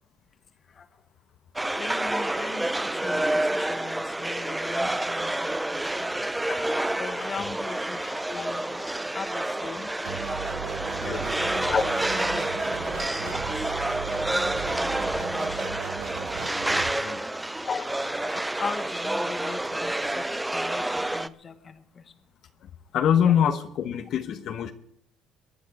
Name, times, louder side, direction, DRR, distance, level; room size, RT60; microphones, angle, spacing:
sound 1, 1.6-21.3, right 1 dB, 10° right, 0.6 m, -29 dB
voice 1, 1.7-2.7 2.9-6.1 6.5-8.8 9.1-9.9 11.4-12.5 12.7-13.3 14.7-15.8 17.6-21.8, left 5 dB, 35° left, 9 dB, 1.3 m, -37 dB
sound 2, 10.0-16.9, right 10 dB, 80° right, 1.0 m, -37 dB
voice 2, 16.9-17.2 22.6-24.7, left 9 dB, 60° left, 7 dB, 1.2 m, -25 dB
23.5 x 9.4 x 4.9 m, 0.70 s
cardioid pair, 120°, 0 cm